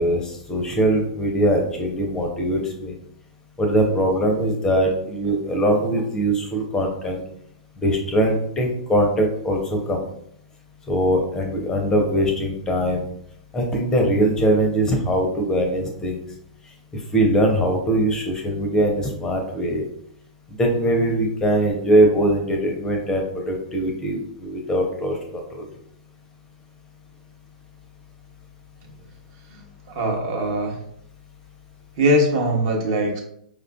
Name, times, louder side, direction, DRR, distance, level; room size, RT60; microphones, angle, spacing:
voice 1, 0.0-2.9 3.6-7.2 7.8-10.0 10.9-13.1 13.5-16.2 17.1-19.8 20.6-25.4, right 1 dB, 15° left, 2 dB, 0.5 m, -21 dB
voice 2, 29.9-30.8 32.0-33.2, equal, 45° right, 0 dB, 0.9 m, -21 dB
4.7 x 2.4 x 2.2 m, 0.69 s
figure-of-eight pair, 105°, 4 cm